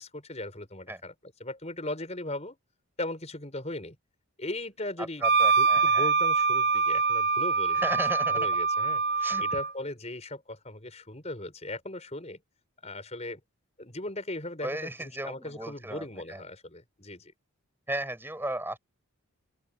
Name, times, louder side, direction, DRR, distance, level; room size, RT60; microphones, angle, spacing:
voice 1, 0.0-2.6 3.0-4.0 4.4-5.3 5.6-7.9 8.3-12.4 12.8-13.4 13.8-17.3, left 1 dB, 30° left, 5.3 m, -38 dB
voice 2, 5.2-6.1 7.7-8.5 9.2-9.4 14.6-16.4 17.9-18.8, right 1 dB, 10° right, 6.4 m, -35 dB
Wind instrument woodwind instrument, 5.2-9.7, right 4 dB, 50° right, 0.7 m, -24 dB
open air
head